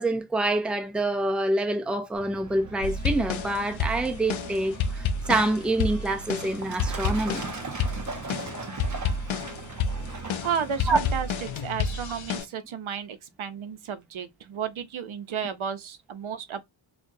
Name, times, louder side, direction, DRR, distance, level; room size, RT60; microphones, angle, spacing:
voice 1, 0.0-7.4 10.9-11.0, right 2 dB, ahead, 0.5 m, -26 dB
Truck, 2.1-12.4, right 4 dB, 35° right, 0.8 m, -40 dB
sound 1, 2.8-12.4, left 4 dB, 70° left, 0.6 m, -30 dB
voice 2, 10.4-16.6, right 7 dB, 75° right, 0.7 m, -33 dB
4.6 x 2.3 x 2.6 m
wide cardioid pair, 100°, 49 cm